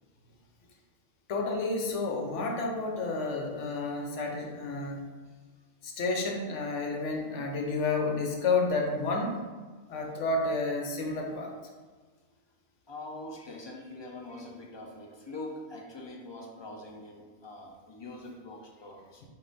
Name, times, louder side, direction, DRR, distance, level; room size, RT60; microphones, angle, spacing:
voice 1, 1.3-5.0 5.8-9.4 9.9-11.5, left 3 dB, 70° left, 2 dB, 1.0 m, -30 dB
voice 2, 12.9-19.3, left 2 dB, 35° left, 0 dB, 0.4 m, -43 dB
5.2 x 2.5 x 3.9 m, 1.4 s
omnidirectional pair, 1.3 m